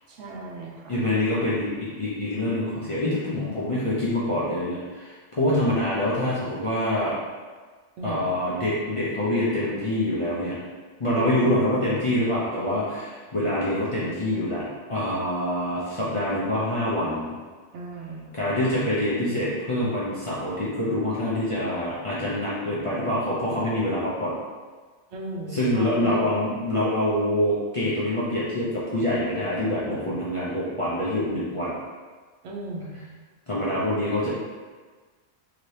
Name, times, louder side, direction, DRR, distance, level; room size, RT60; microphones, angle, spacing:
voice 1, 0.1-1.0 8.0-8.5 11.1-11.8 17.7-18.4 25.1-26.3 32.4-33.1, right 2 dB, 80° right, -1 dB, 0.9 m, -37 dB
voice 2, 0.9-7.2 8.0-10.6 11.0-17.3 18.3-24.3 25.5-31.8 33.5-34.3, left 1 dB, 40° left, -9 dB, 0.5 m, -25 dB
2.9 x 2.7 x 3.1 m, 1.4 s
omnidirectional pair, 1.2 m